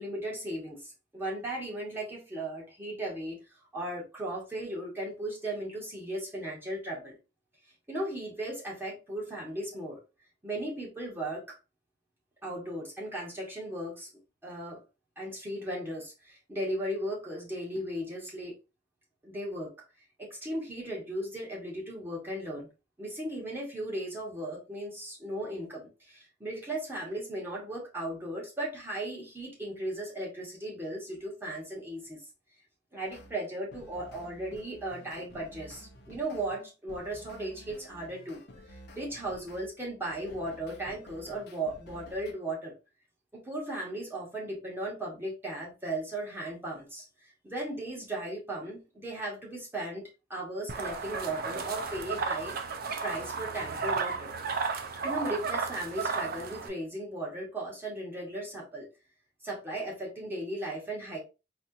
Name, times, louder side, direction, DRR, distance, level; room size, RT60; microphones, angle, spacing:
voice 1, 0.0-3.4 3.7-7.2 7.9-10.0 10.4-11.6 12.4-14.1 14.4-14.8 15.2-18.5 19.2-19.7 20.2-22.7 23.0-32.2 32.9-38.4 38.9-42.7 43.3-47.0 47.4-52.6 53.0-54.3 55.0-58.9 59.4-61.2, right 1 dB, 10° right, 1.2 m, -36 dB
sound 1, 33.0-33.3 33.7-39.7 40.1-42.3, equal, 60° left, 0.7 m, -51 dB
sound 2, 50.7-56.7, right 5 dB, 55° right, 0.6 m, -33 dB
4.2 x 2.4 x 2.7 m
head